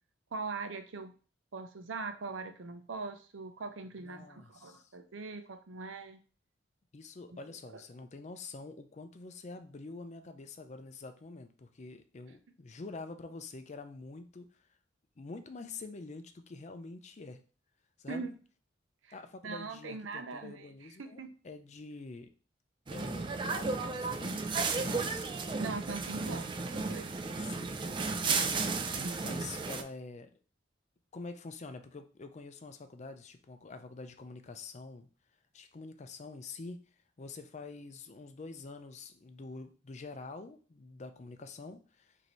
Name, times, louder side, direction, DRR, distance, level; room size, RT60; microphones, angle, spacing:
voice 1, 0.3-1.1 1.5-6.2 7.7-7.8 18.1-18.3 19.0-19.2 19.4-21.3 25.6-27.2 29.0-29.4, right 4 dB, 90° right, 8 dB, 0.6 m, -41 dB
voice 2, 4.0-4.9 6.9-14.7 15.2-17.4 18.0-18.3 19.1-22.3 22.9-24.4 24.7-25.3 27.4-28.5 29.2-30.3 31.1-35.1 35.5-36.8 37.2-42.2, left 3 dB, 35° left, 8 dB, 0.4 m, -46 dB
sound 1, 22.9-29.8, right 4 dB, 25° right, 0.4 m, -34 dB
5.1 x 2.7 x 3.1 m, 0.37 s
head